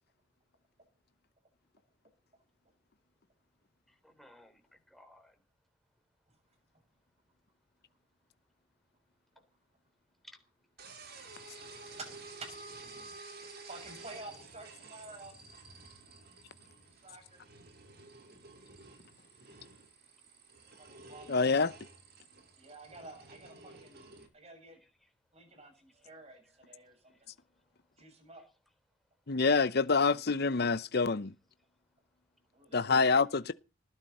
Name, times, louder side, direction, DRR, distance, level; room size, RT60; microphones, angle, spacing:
voice 1, 3.9-5.4 10.2-10.4 14.4-14.5 23.7-23.8 24.8-25.1 27.0-27.3 28.3-28.5, left 1 dB, ahead, 3.6 m, -59 dB
sound 1, 10.8-24.3, right 3 dB, 50° right, 4.6 m, -52 dB
voice 2, 13.6-15.4 16.9-17.4 20.8-21.3 22.6-24.8 25.3-27.3 28.0-28.4 32.5-33.1, right 2 dB, 30° right, 7.2 m, -50 dB
voice 3, 21.3-21.7 29.3-31.3 32.7-33.5, left 4 dB, 50° left, 0.8 m, -26 dB
20.0 x 15.5 x 4.3 m
head